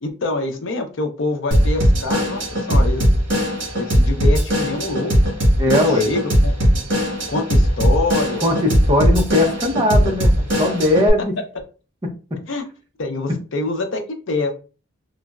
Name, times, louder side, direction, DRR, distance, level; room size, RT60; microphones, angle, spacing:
voice 1, 0.0-3.1 3.8-5.1 5.7-6.5 7.3-8.5 12.5-12.6 13.0-14.0 14.3-14.5, left 2 dB, 70° left, 5 dB, 0.6 m, -25 dB
Drum kit / Drum, 1.5-11.1, equal, 60° right, 1.3 m, -18 dB
voice 2, 5.6-6.1 8.4-11.3, left 1 dB, 20° right, 1 dB, 0.5 m, -19 dB
3.8 x 2.0 x 2.3 m, 0.34 s
head